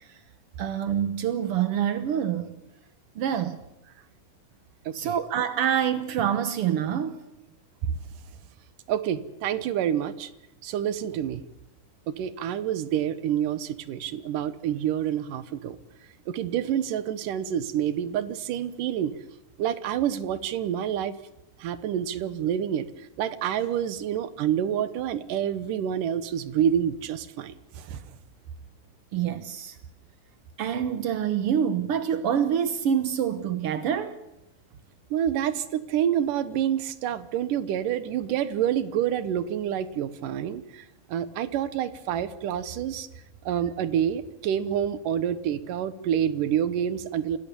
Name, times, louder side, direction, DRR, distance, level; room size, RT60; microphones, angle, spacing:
voice 1, 0.6-2.6 3.1-3.6 4.9-7.2 29.1-29.7 30.6-34.2, right 9 dB, 90° right, 1.2 m, -26 dB
voice 2, 4.9-5.2 8.9-10.3 10.6-11.4 12.1-15.8 16.3-19.1 19.6-21.2 21.6-28.0 35.1-43.1 43.5-47.4, right 10 dB, 70° right, 2.6 m, -28 dB
27.5 x 19.5 x 7.1 m
omnidirectional pair, 4.2 m